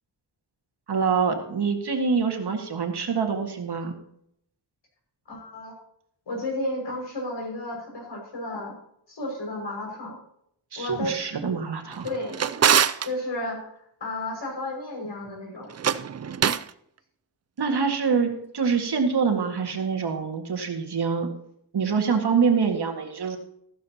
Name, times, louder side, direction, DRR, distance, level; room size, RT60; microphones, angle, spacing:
voice 1, 0.9-3.9 10.7-12.0 17.6-21.3 21.7-23.4, right 5 dB, 65° right, 4 dB, 2.0 m, -25 dB
voice 2, 5.3-5.7 6.3-8.7 9.1-10.2 10.8-11.1 12.0-12.4 13.0-15.7, left 1 dB, 75° left, -1 dB, 6.1 m, -32 dB
Drawer open or close, 11.9-13.1 15.7-16.7, right 8 dB, 40° right, 0.4 m, -23 dB
14.5 x 13.0 x 2.9 m, 0.72 s
wide cardioid pair, 135°, 44 cm